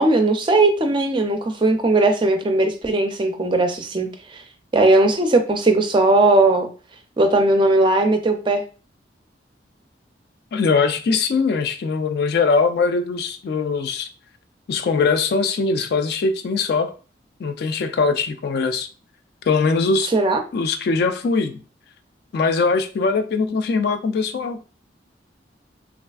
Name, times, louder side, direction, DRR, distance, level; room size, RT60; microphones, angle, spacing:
voice 1, 0.0-4.4 4.7-6.7 7.2-8.6 20.1-20.4, right 2 dB, 25° right, 0.4 m, -18 dB
voice 2, 10.5-14.1 14.7-16.9 17.4-18.9 19.5-20.1 20.5-21.6 22.3-24.6, left 4 dB, 55° left, 0.3 m, -21 dB
3.2 x 2.4 x 2.3 m
head